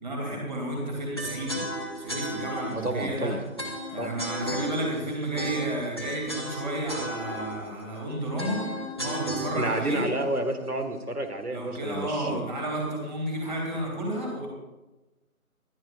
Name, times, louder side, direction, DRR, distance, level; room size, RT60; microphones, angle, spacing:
voice 1, 0.0-1.6 2.0-3.3 3.9-8.6 9.0-10.1 11.5-14.5, right 1 dB, 30° right, -1 dB, 3.0 m, -31 dB
sound 1, 1.2-11.2, right 1 dB, 15° left, 0.9 m, -36 dB
voice 2, 2.7-3.4 4.0-4.1 9.6-12.4, right 1 dB, 85° right, 6 dB, 1.9 m, -30 dB
20.5 x 12.0 x 2.5 m, 1.1 s
figure-of-eight pair, 165°, 44 cm